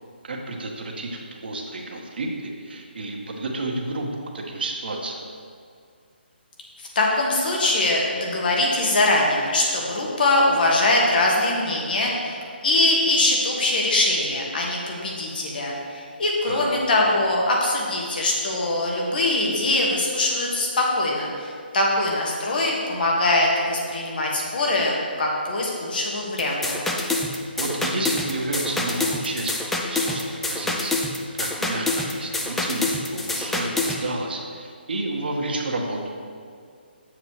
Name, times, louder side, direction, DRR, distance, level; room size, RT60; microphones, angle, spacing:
voice 1, 0.2-5.2 16.4-16.8 27.6-31.0 31.3-36.0, right 2 dB, 60° right, 1 dB, 1.2 m, -31 dB
voice 2, 6.9-26.8, left 2 dB, 55° left, -2 dB, 1.6 m, -22 dB
sound 1, 26.4-34.0, left 2 dB, 5° left, 0.3 m, -26 dB
7.3 x 7.3 x 3.2 m, 2.3 s
hypercardioid pair, 155°, 6 cm